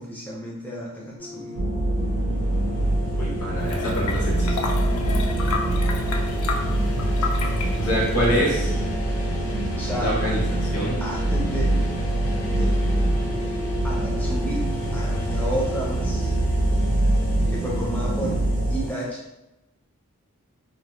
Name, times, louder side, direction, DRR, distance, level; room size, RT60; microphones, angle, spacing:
voice 1, 0.0-1.6 9.7-10.2 11.0-11.7 12.4-12.8 13.8-16.3 17.5-18.4 18.7-19.2, right 1 dB, 5° left, -5 dB, 0.4 m, -31 dB
sound 1, 1.2-19.0, left 1 dB, 55° left, 0.7 m, -36 dB
sound 2, 1.6-18.9, right 1 dB, 70° right, 0.4 m, -24 dB
voice 2, 3.2-4.5 7.8-8.8 10.0-11.0, equal, 90° left, -5 dB, 1.0 m, -26 dB
sound 3, 3.6-8.6, left 4 dB, 75° left, 0.3 m, -31 dB
2.1 x 2.0 x 3.0 m, 0.93 s
head